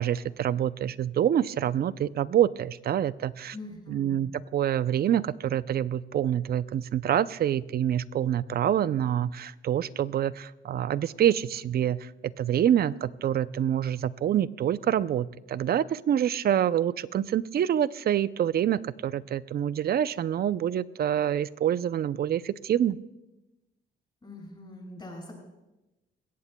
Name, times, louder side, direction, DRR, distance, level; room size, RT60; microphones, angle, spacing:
voice 1, 0.0-3.6 3.9-23.0, right 10 dB, 50° right, 17 dB, 0.5 m, -26 dB
voice 2, 3.5-4.2 24.2-25.4, left 2 dB, 25° left, -1 dB, 6.3 m, -43 dB
21.5 x 17.0 x 2.2 m, 0.98 s
cardioid pair, 90°, 20 cm